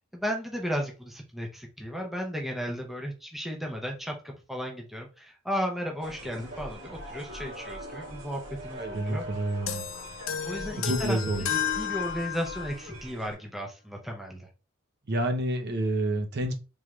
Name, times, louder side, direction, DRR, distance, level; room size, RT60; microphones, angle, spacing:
voice 1, 0.1-9.3 10.4-14.5, equal, ahead, 0.6 m, -35 dB
sound 1, 6.0-13.3, equal, 85° right, 1.9 m, -43 dB
voice 2, 8.8-9.9 10.8-11.5 15.1-16.5, right 1 dB, 50° right, 0.7 m, -28 dB
sound 2, 9.7-12.9, left 8 dB, 65° left, 0.4 m, -32 dB
3.6 x 3.2 x 3.1 m
head